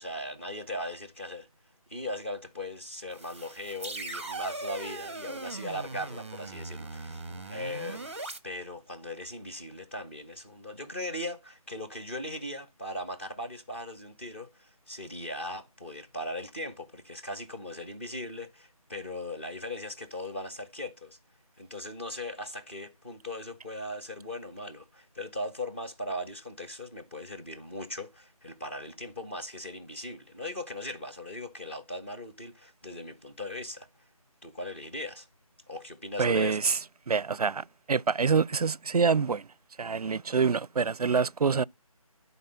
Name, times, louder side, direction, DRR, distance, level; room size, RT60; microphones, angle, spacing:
voice 1, 0.0-1.5 1.9-8.1 8.4-21.2 21.6-33.9 34.4-35.3 35.7-36.6, left 1 dB, 20° left, 1.1 m, -39 dB
sound 1, 3.1-8.4, right 3 dB, 20° right, 0.8 m, -39 dB
voice 2, 36.2-36.8 37.1-39.5 39.8-41.6, right 5 dB, 85° right, 0.4 m, -26 dB
11.0 x 4.0 x 5.5 m
figure-of-eight pair, 170°, 19 cm